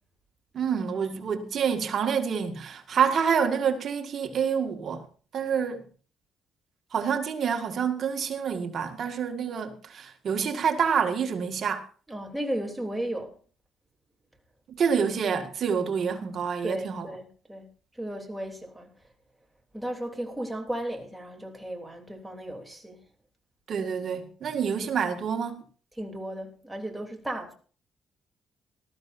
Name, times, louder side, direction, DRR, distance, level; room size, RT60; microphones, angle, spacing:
voice 1, 0.5-5.0 5.3-5.9 6.9-11.9 14.8-17.1 23.7-25.6, right 7 dB, 60° right, 1.9 m, -27 dB
voice 2, 12.1-13.3 16.6-17.7 18.0-18.9 19.7-23.0 26.0-27.5, right 1 dB, 10° right, 3.3 m, -35 dB
19.0 x 13.5 x 2.7 m
cardioid pair, 90°, 0 cm